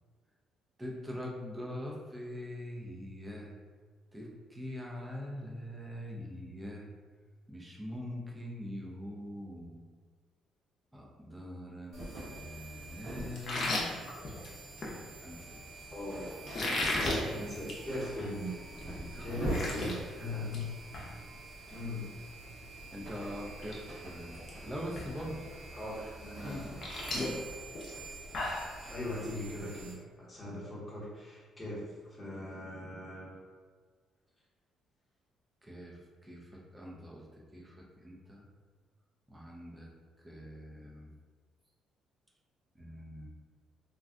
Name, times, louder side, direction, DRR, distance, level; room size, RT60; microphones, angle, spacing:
voice 1, 0.8-3.5 4.1-6.9 7.5-9.8 10.9-13.7 14.0-14.2 15.2-15.6 17.4-17.5 18.9-19.3 22.9-25.4 26.4-26.7 27.1-27.5 35.6-38.4 39.3-39.9 40.2-41.1 42.7-43.3, left 1 dB, 10° right, -2 dB, 0.5 m, -43 dB
sound 1, 11.9-29.9, right 1 dB, 45° right, 1.0 m, -44 dB
Sips From Can - Multiple, 13.4-14.9 16.4-17.2 17.6-17.8 18.2-18.3 18.8-18.9 19.2-19.9 20.3-20.6 20.9-21.1 22.9-23.0 23.5-23.8 24.0-24.5 25.0-25.1 26.4-28.7, left 2 dB, 40° left, 0.6 m, -35 dB
voice 2, 15.9-16.4 17.3-18.5 19.2-20.7 21.7-22.2 25.7-26.9 28.9-33.3, left 1 dB, 20° left, -7 dB, 0.9 m, -40 dB
2.5 x 2.2 x 3.6 m, 1.6 s
cardioid pair, 150°, 0 cm